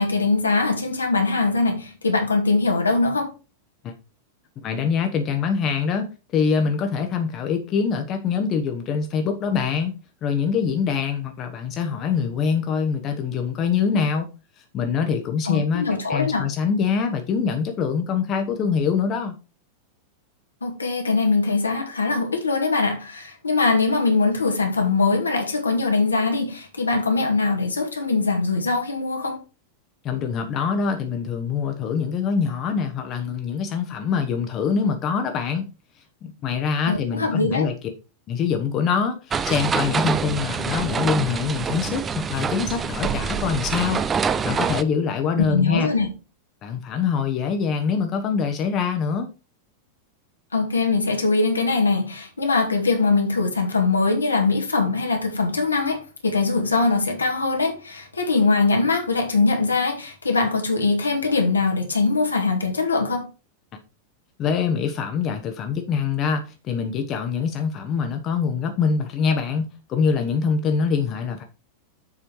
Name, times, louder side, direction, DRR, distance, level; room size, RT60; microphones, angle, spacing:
voice 1, 0.0-3.3 15.5-16.4 20.6-29.4 36.9-37.7 45.4-46.1 50.5-63.3, left 3 dB, 75° left, 1.9 m, -22 dB
voice 2, 4.6-14.3 14.7-19.4 30.0-35.7 36.2-37.7 38.3-44.0 44.4-45.9 46.6-49.3 64.4-71.4, left 6 dB, 35° left, 1.1 m, -24 dB
sound 1, 39.3-44.8, right 6 dB, 20° right, 0.6 m, -26 dB
7.4 x 5.0 x 4.6 m
figure-of-eight pair, 90°, 0 cm